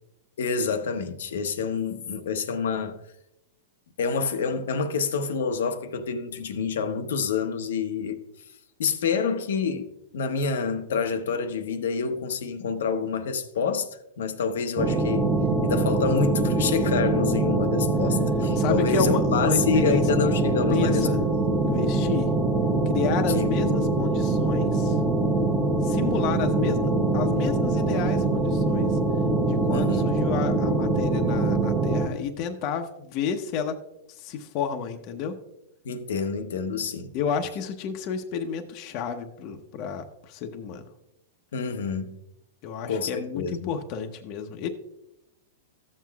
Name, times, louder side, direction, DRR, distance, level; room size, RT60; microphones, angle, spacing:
voice 1, 0.4-3.0 4.0-8.2 8.8-13.9 14.2-15.3 15.6-21.1 23.2-23.6 29.7-30.1 35.8-37.1 41.5-42.1 42.9-43.7, left 5 dB, 80° left, 0.9 m, -27 dB
sound 1, 14.8-32.1, right 2 dB, 20° right, 0.9 m, -23 dB
voice 2, 18.6-20.0 20.4-21.2 21.6-22.3 22.9-25.0 25.8-29.0 29.4-33.8 34.1-35.4 37.1-40.8 42.6-44.7, left 7 dB, 40° left, 0.8 m, -31 dB
13.5 x 7.6 x 2.3 m
hypercardioid pair, 140°, 0 cm